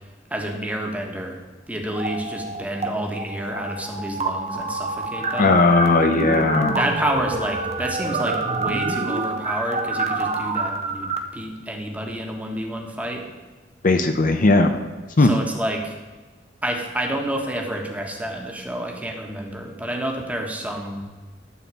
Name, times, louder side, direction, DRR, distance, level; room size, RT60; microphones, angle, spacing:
voice 1, 0.3-1.4 1.7-5.6 6.7-13.2 15.2-15.9 16.6-21.1, right 1 dB, 10° right, 1 dB, 1.5 m, -29 dB
sound 1, 1.9-2.9 3.2-11.2, right 3 dB, 35° right, 1.0 m, -27 dB
voice 2, 5.4-6.7 13.8-14.7 15.2-15.3, left 3 dB, 45° left, 6 dB, 0.7 m, -17 dB
12.5 x 4.3 x 8.3 m, 1.3 s
head